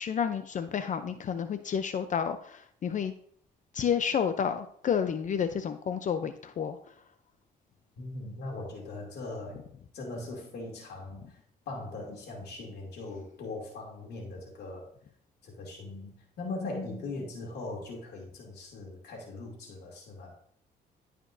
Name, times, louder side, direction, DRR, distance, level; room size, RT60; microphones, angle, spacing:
voice 1, 0.0-3.1 3.7-6.8, left 7 dB, 50° left, 9 dB, 0.6 m, -30 dB
voice 2, 8.0-9.7 9.9-11.4 11.7-14.9 15.4-20.4, left 2 dB, 75° left, -1 dB, 2.5 m, -40 dB
14.5 x 5.1 x 2.6 m, 0.63 s
cardioid pair, 95°, 17 cm